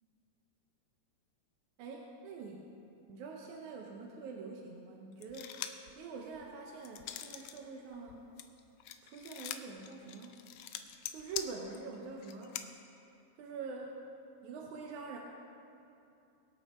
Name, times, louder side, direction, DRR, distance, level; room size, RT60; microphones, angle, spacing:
voice 1, 1.8-2.7 3.1-8.3 9.0-10.4 11.1-12.6 13.4-14.0 14.4-15.2, right 4 dB, 70° right, 0 dB, 2.2 m, -45 dB
sound 1, 5.2-5.9 6.3-7.6 7.9-12.6, left 11 dB, 85° left, 1.5 m, -43 dB
23.5 x 8.4 x 4.3 m, 2.7 s
omnidirectional pair, 3.8 m